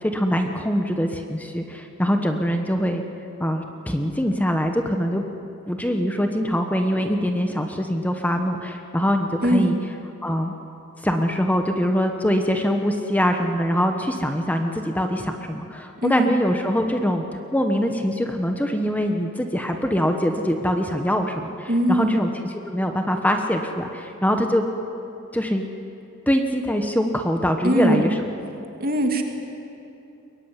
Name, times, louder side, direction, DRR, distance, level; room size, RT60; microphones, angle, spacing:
voice 1, 0.0-3.0 3.4-5.2 5.7-9.8 10.2-10.5 11.0-17.3 17.5-22.3 22.7-24.7 25.3-25.6 26.3-28.1, equal, 10° left, 4 dB, 1.1 m, -23 dB
voice 2, 9.4-9.8 16.0-16.3 21.7-22.2 27.6-28.2 28.8-29.2, right 1 dB, 45° right, 3 dB, 2.7 m, -21 dB
22.5 x 22.0 x 9.9 m, 2.9 s
head